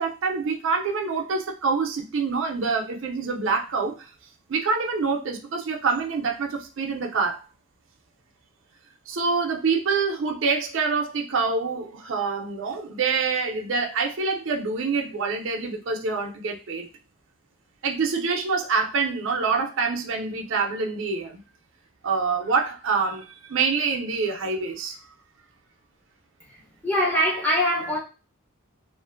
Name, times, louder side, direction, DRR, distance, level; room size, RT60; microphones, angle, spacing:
voice 1, 0.0-4.1 4.5-7.4 9.1-16.9 17.8-21.4 22.0-25.0, right 4 dB, 60° right, 0.4 m, -26 dB
voice 2, 26.5-28.0, equal, 5° left, 0.6 m, -23 dB
2.5 x 2.4 x 2.5 m
head